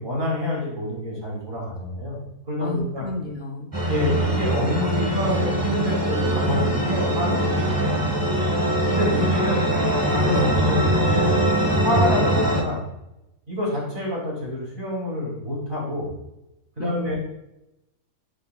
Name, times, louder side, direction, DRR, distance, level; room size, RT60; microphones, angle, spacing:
voice 1, 0.0-2.2 2.5-3.0 3.9-7.8 8.9-9.7 10.1-11.3 11.8-12.8 13.5-16.1 16.8-17.2, left 1 dB, 40° right, -4 dB, 2.6 m, -27 dB
voice 2, 2.6-3.8 10.3-10.6 16.8-17.2, left 2 dB, 60° left, 2 dB, 0.7 m, -30 dB
sound 1, 3.7-12.6, right 1 dB, 15° right, 1.0 m, -22 dB
8.9 x 5.4 x 2.3 m, 0.90 s
omnidirectional pair, 1.5 m